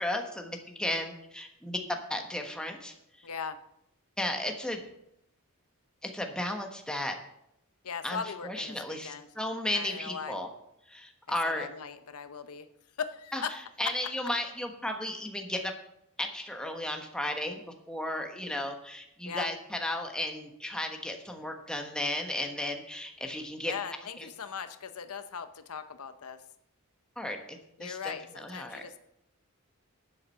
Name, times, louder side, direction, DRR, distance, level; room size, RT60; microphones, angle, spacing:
voice 1, 0.0-2.9 4.2-4.8 6.0-7.1 8.0-10.5 10.9-11.7 13.3-15.7 16.2-23.7 27.2-28.8, left 1 dB, 5° left, 3 dB, 1.3 m, -34 dB
voice 2, 3.2-3.6 7.8-9.3 9.7-10.3 11.4-12.7 13.0-13.5 19.2-19.5 23.7-26.4 27.8-29.0, left 6 dB, 75° left, 10 dB, 0.8 m, -39 dB
11.5 x 7.5 x 5.6 m, 0.78 s
head